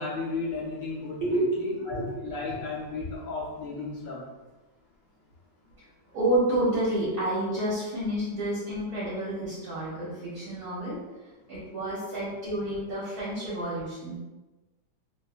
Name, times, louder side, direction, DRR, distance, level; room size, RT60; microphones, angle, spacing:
voice 1, 0.0-4.3, left 3 dB, 65° left, -4 dB, 1.0 m, -34 dB
voice 2, 1.7-2.6 5.8-14.2, right 1 dB, 65° right, -9 dB, 1.1 m, -30 dB
3.0 x 2.5 x 2.4 m, 1.2 s
omnidirectional pair, 1.9 m